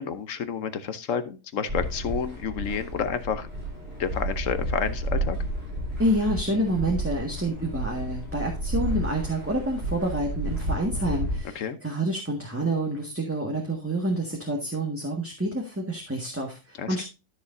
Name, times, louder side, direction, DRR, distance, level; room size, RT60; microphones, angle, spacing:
voice 1, 0.0-3.5 4.0-5.4 11.5-11.8 16.8-17.1, left 7 dB, 70° left, 11 dB, 1.3 m, -30 dB
sound 1, 1.7-11.4, right 1 dB, 50° right, 4.8 m, -31 dB
voice 2, 6.0-17.1, right 1 dB, 10° right, 0 dB, 1.6 m, -28 dB
13.0 x 6.6 x 2.6 m, 0.28 s
omnidirectional pair, 1.4 m